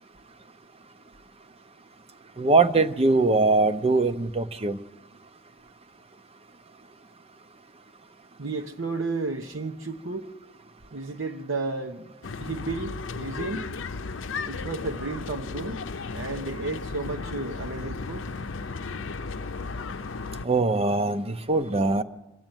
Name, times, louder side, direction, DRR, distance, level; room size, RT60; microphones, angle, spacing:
voice 1, 2.4-4.8 20.4-22.0, right 3 dB, 30° right, 0.7 m, -22 dB
voice 2, 8.4-10.3 10.9-12.1 12.4-13.7 14.4-15.8 16.1-18.3, right 3 dB, 75° right, 1.0 m, -32 dB
sound 1, 12.2-20.5, left 4 dB, 70° left, 0.6 m, -35 dB
24.5 x 14.5 x 9.1 m
head